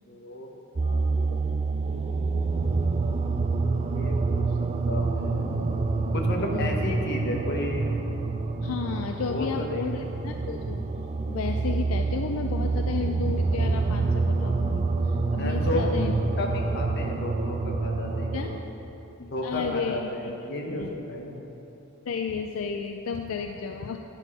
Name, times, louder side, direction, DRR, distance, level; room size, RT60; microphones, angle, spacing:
voice 1, 0.1-0.5 0.8-1.9 3.5-3.6 3.9-4.5 4.9-5.6 6.1-8.1 9.2-10.1 15.4-15.8 16.4-18.7 19.3-21.4, left 1 dB, 55° left, 1 dB, 1.0 m, -33 dB
sound 1, 0.8-18.6, right 3 dB, 30° right, 0.4 m, -27 dB
voice 2, 6.5-6.9 8.6-10.8 11.3-16.1 18.3-18.5 19.4-20.1 20.8-20.9 22.1-24.0, left 5 dB, 80° left, 5 dB, 0.4 m, -32 dB
9.9 x 5.7 x 4.8 m, 2.9 s
head